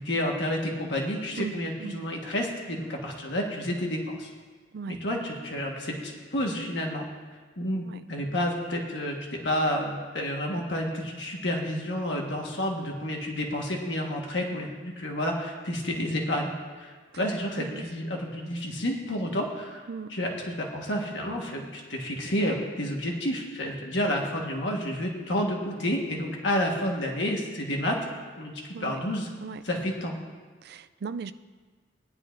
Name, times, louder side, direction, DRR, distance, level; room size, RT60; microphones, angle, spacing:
voice 1, 0.0-4.3 4.9-7.0 7.6-7.8 8.1-16.5 16.8-19.8 20.1-28.0 28.4-29.3 29.6-30.2, left 1 dB, 65° left, 0 dB, 1.5 m, -30 dB
voice 2, 1.4-2.1 4.7-5.0 7.8-8.0 17.5-17.8 19.9-20.2 28.7-29.0 29.4-29.9 30.6-31.3, right 5 dB, 55° right, 12 dB, 0.4 m, -38 dB
18.0 x 10.5 x 2.6 m, 1.5 s
head